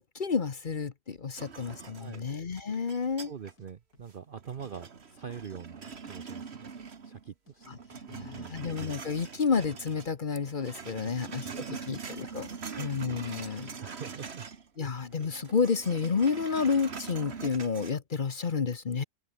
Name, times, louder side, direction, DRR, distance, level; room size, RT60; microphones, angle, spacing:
voice 1, 0.0-3.3 7.7-7.8 8.1-12.5 12.8-13.7 14.8-19.0, left 5 dB, 40° left, 0.8 m, -30 dB
sound 1, 1.1-1.3 1.8-1.9 2.4-2.8 3.0-3.7 3.9-4.7 5.0-5.1 5.3-6.2 6.4-6.5 6.8-7.0 7.3-7.6 8.1-8.4 8.7-10.0 10.3-10.4 11.0-11.2 11.5-11.8 12.1-12.2, left 2 dB, 55° left, 6.0 m, -62 dB
sound 2, 1.4-3.7 4.1-7.3 7.6-10.1 10.4-14.7 14.9-17.9, right 5 dB, 40° right, 1.6 m, -43 dB
voice 2, 1.9-2.3 3.2-6.7 7.0-7.7 8.1-8.7 11.0-11.8 12.5-12.9 13.5-14.5 14.8-14.9, right 7 dB, 85° right, 0.4 m, -44 dB
open air
omnidirectional pair, 2.0 m